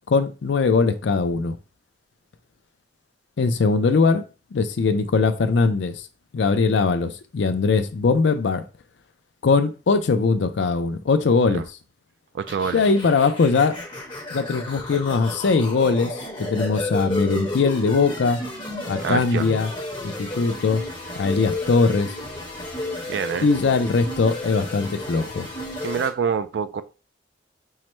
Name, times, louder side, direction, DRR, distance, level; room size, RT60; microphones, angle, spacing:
voice 1, 0.1-1.6 3.4-4.2 4.5-6.0 6.3-8.6 9.4-11.6 12.7-13.7 14.3-18.4 18.9-19.7 20.0-20.8 21.2-22.1 23.4-25.5, left 4 dB, 80° left, 0.5 m, -21 dB
voice 2, 12.3-12.8 19.0-19.5 23.1-23.5 25.8-26.8, right 6 dB, 70° right, 0.3 m, -26 dB
sound 1, 12.5-26.1, left 1 dB, 25° left, 1.1 m, -32 dB
5.5 x 2.1 x 3.1 m
head